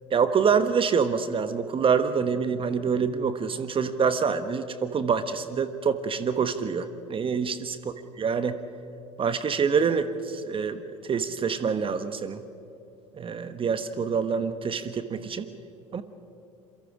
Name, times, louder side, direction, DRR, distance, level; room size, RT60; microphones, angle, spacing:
voice 1, 0.1-7.8 8.2-8.6 9.2-10.8 11.1-12.4 13.1-15.5 15.9-16.0, right 6 dB, 30° right, 11 dB, 1.2 m, -26 dB
27.0 x 23.5 x 5.0 m, 2.6 s
figure-of-eight pair, 70°, 17 cm